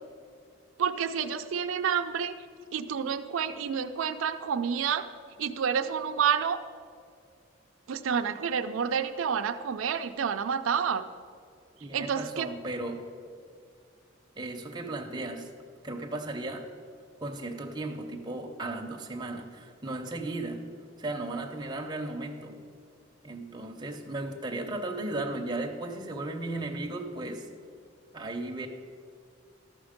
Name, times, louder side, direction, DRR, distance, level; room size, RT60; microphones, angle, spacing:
voice 1, 0.8-2.3 2.7-5.1 5.4-6.6 7.9-11.0 11.9-12.5, right 7 dB, 90° right, 8 dB, 0.4 m, -29 dB
voice 2, 11.8-13.1 14.4-15.5 15.8-16.7 17.2-20.7 21.0-22.6 23.2-27.5 28.1-28.7, right 2 dB, 20° right, 2 dB, 0.7 m, -35 dB
13.0 x 6.0 x 5.1 m, 2.3 s
head